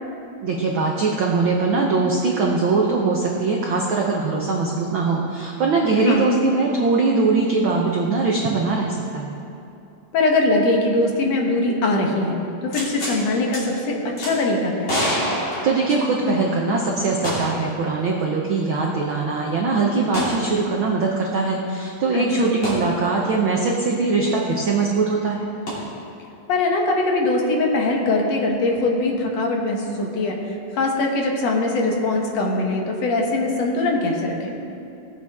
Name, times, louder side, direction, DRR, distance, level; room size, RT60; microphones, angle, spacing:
voice 1, 0.4-9.4 15.6-25.5, right 3 dB, 85° right, -1 dB, 1.1 m, -21 dB
voice 2, 5.9-6.3 10.1-12.4 12.6-15.0 22.1-22.6 26.5-34.5, left 2 dB, 60° left, 0 dB, 2.3 m, -22 dB
sound 1, 12.7-13.2 13.5-13.6 14.2-14.3 14.9-16.4 17.2-17.7 18.0-18.1 20.1-20.4 22.6-22.8 25.7-25.8, equal, 40° left, 3.7 m, -26 dB
19.0 x 8.0 x 3.6 m, 2.7 s
omnidirectional pair, 3.6 m